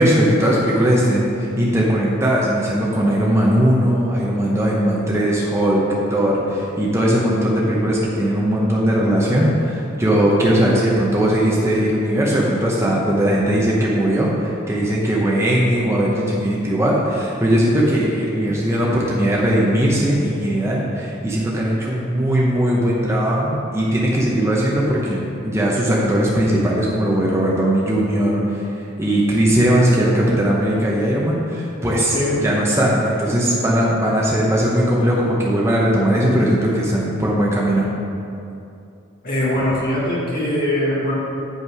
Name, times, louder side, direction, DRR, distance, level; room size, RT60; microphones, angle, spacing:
voice 1, 0.0-37.9, right 1 dB, 15° right, -4 dB, 0.8 m, -19 dB
voice 2, 39.2-41.1, left 1 dB, 45° left, -6 dB, 1.9 m, -21 dB
7.5 x 5.5 x 4.9 m, 2.6 s
head